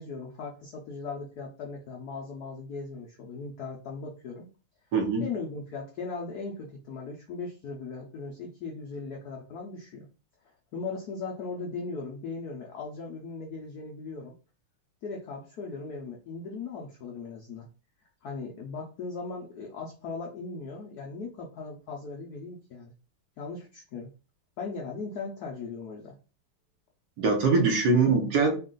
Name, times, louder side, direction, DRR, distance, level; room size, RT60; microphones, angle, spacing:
voice 1, 0.0-4.5 5.2-10.1 10.7-14.3 15.0-17.7 18.2-22.9 23.4-24.1 24.6-26.1, left 4 dB, 70° left, -1 dB, 0.9 m, -38 dB
voice 2, 4.9-5.3 27.2-28.6, right 4 dB, 60° right, 3 dB, 1.4 m, -23 dB
4.2 x 2.4 x 3.8 m, 0.35 s
omnidirectional pair, 2.4 m